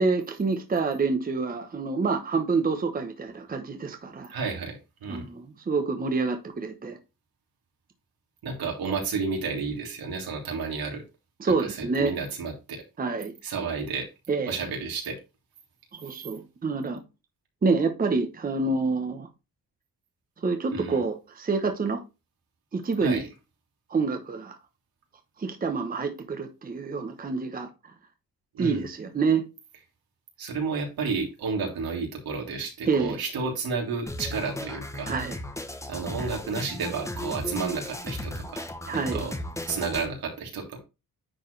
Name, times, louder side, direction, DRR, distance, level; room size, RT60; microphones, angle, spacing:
voice 1, 0.0-4.3 5.1-7.0 11.4-12.1 13.0-13.3 14.3-14.5 15.9-17.0 17.6-19.3 20.4-22.0 22.7-23.3 23.9-24.6 25.4-27.7 28.6-29.4 32.8-33.2 35.1-35.4 38.9-39.3, right 4 dB, 25° right, 1.0 m, -27 dB
voice 2, 4.3-5.3 8.4-11.0 11.6-12.8 13.4-14.1 14.5-15.2 16.1-16.2 20.7-21.0 23.0-23.2 28.5-28.8 30.4-35.1 35.9-38.7 38.9-39.4 39.7-40.8, right 4 dB, 80° right, 3.3 m, -31 dB
sound 1, 34.1-40.1, left 1 dB, 10° left, 0.9 m, -36 dB
9.8 x 4.6 x 3.2 m
wide cardioid pair, 175°, 35 cm